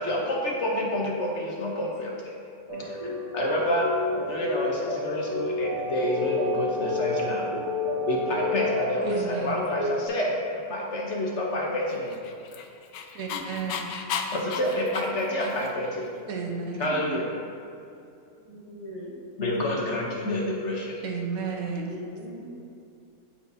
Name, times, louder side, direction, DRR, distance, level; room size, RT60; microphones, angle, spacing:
voice 1, 0.0-2.3 2.7-3.0 3.3-3.9 4.3-7.5 8.1-12.1 14.3-16.0 16.8-17.2 19.4-21.0, left 1 dB, 55° left, -2 dB, 1.1 m, -28 dB
sound 1, 2.7-10.1, left 2 dB, 25° left, 1.4 m, -30 dB
voice 2, 2.8-3.1 13.3-13.6 16.9-17.4 18.5-19.2 21.8-22.5, equal, 25° right, -5 dB, 1.3 m, -40 dB
voice 3, 9.0-9.7 13.1-13.9 16.3-16.9 21.0-21.9, right 5 dB, 75° right, 1 dB, 1.2 m, -32 dB
Dog, 12.1-15.9, left 6 dB, 80° left, 1.1 m, -34 dB
12.5 x 4.4 x 2.7 m, 2.6 s
omnidirectional pair, 1.5 m